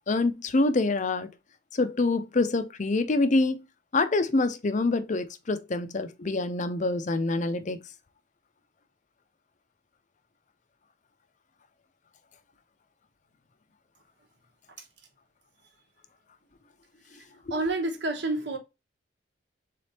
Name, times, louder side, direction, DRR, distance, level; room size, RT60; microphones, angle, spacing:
voice 1, 0.1-1.3 1.7-3.6 3.9-7.8, left 2 dB, 40° left, 0.5 m, -26 dB
voice 2, 17.5-18.6, right 2 dB, 60° right, 1.1 m, -29 dB
3.8 x 3.4 x 4.1 m
head